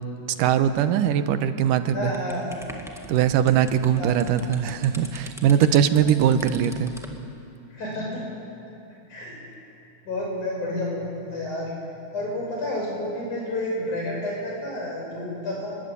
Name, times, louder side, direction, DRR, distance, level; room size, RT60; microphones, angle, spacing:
voice 1, 0.4-2.1 3.1-6.9, right 9 dB, 90° right, 10 dB, 2.6 m, -21 dB
voice 2, 1.9-2.5 3.9-4.1 6.0-6.1 7.7-8.2 9.1-9.4 10.1-11.7 12.1-15.8, left 1 dB, 70° left, -2 dB, 7.8 m, -30 dB
sound 1, 2.1-7.2, equal, ahead, 0.8 m, -43 dB
24.5 x 21.0 x 8.5 m, 2.7 s
omnidirectional pair, 3.6 m